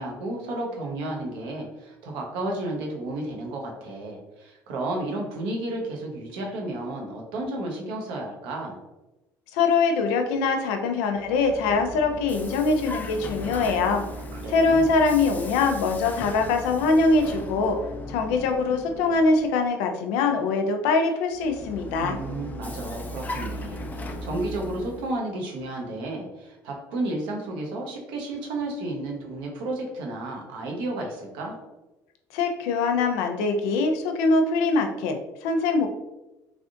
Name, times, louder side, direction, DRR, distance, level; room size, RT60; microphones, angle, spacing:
voice 1, 0.0-8.8 14.3-14.9 22.0-31.6, right 2 dB, 80° right, 0 dB, 0.8 m, -32 dB
voice 2, 9.5-14.0 14.5-17.8 18.1-22.2 32.3-35.2 35.4-35.9, left 3 dB, 85° left, 5 dB, 0.4 m, -23 dB
Vehicle, 11.1-19.6 21.3-25.2, left 1 dB, 20° left, 0.4 m, -37 dB
3.3 x 2.5 x 2.5 m, 1.0 s
supercardioid pair, 80°, 8 cm